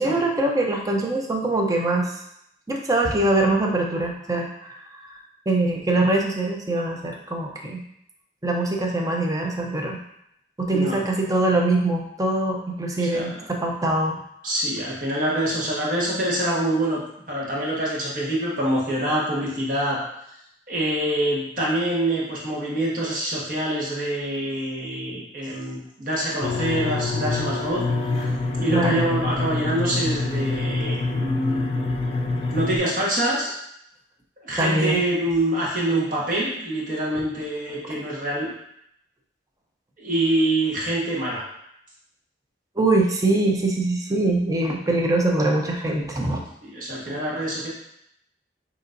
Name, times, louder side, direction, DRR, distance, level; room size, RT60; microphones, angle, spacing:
voice 1, 0.0-2.1 2.7-5.2 5.5-7.8 8.4-10.0 10.6-14.2 28.7-29.0 34.6-35.0 42.8-46.4 47.1-47.2, right 2 dB, 20° right, 0 dB, 0.6 m, -23 dB
voice 2, 10.7-11.0 13.0-13.3 14.4-17.0 17.3-20.0 20.7-27.8 28.6-31.9 32.5-33.5 34.4-38.5 40.0-41.4 46.6-47.7, right 1 dB, 50° right, -5 dB, 1.4 m, -25 dB
sound 1, 26.4-32.8, left 3 dB, 35° left, 0.5 m, -26 dB
6.9 x 2.9 x 2.6 m, 0.77 s
head